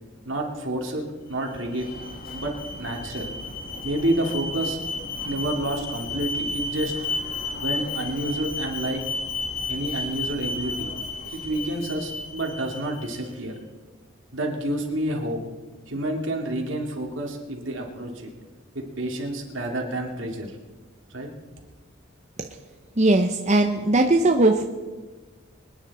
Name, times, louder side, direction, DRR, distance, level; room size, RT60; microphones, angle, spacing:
voice 1, 0.2-1.9 2.3-3.3 3.8-4.8 5.2-6.9 7.6-9.0 9.7-10.9 11.3-13.5 14.3-15.4 15.9-18.3 18.7-20.6 21.1-21.3, right 1 dB, 70° right, 1 dB, 2.7 m, -29 dB
Alarm, 1.3-13.3, left 3 dB, 50° left, 1.6 m, -33 dB
voice 2, 23.0-24.7, right 2 dB, 35° right, 3 dB, 0.8 m, -19 dB
25.0 x 10.0 x 4.3 m, 1.3 s
head